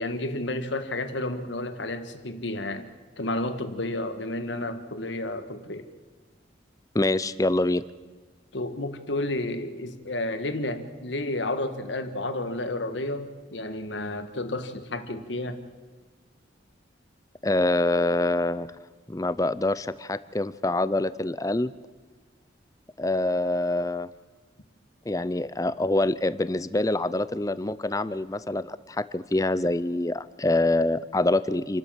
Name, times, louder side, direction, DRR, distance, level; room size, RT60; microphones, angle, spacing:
voice 1, 0.0-2.9 3.2-5.9 8.5-15.6, left 2 dB, 75° left, 9 dB, 1.6 m, -31 dB
voice 2, 6.9-7.8 17.4-18.7 19.1-21.7 23.0-24.1 25.1-31.8, left 2 dB, 20° left, 16 dB, 0.5 m, -25 dB
28.0 x 12.5 x 7.5 m, 1.4 s
head